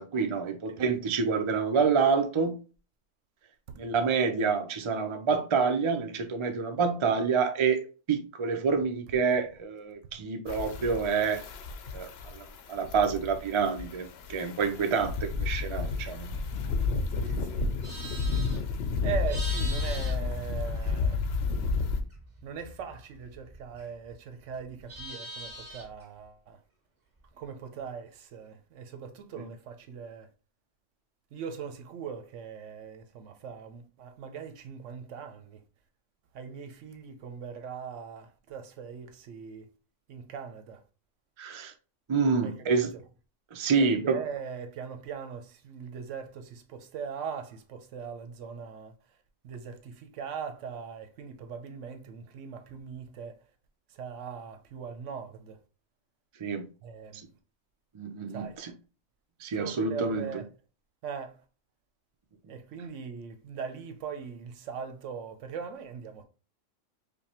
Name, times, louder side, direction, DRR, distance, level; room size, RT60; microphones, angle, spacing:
voice 1, 0.0-2.6 3.7-11.5 11.9-16.3 16.9-17.0 29.4-29.5 41.4-41.7 42.1-42.9 43.5-44.2 56.4-56.7 57.1-57.2 57.9-58.7 59.4-60.3, right 5 dB, 50° right, 0.3 m, -28 dB
sound 1, 10.5-22.0, left 4 dB, 65° left, 0.8 m, -31 dB
voice 2, 17.1-17.7 19.0-21.3 22.4-26.6 27.3-30.3 31.3-35.6 36.3-39.7 40.1-40.8 42.4-43.0 43.7-48.9 49.4-53.4 53.9-55.6 56.8-57.4 58.3-58.6 59.6-60.5 61.0-61.4 62.5-66.2, right 6 dB, 80° right, 1.0 m, -40 dB
Livestock farm animals working animals, 17.6-21.3 21.6-24.1 24.4-26.0, right 1 dB, 25° right, 1.9 m, -42 dB
5.1 x 2.2 x 2.9 m
omnidirectional pair, 1.3 m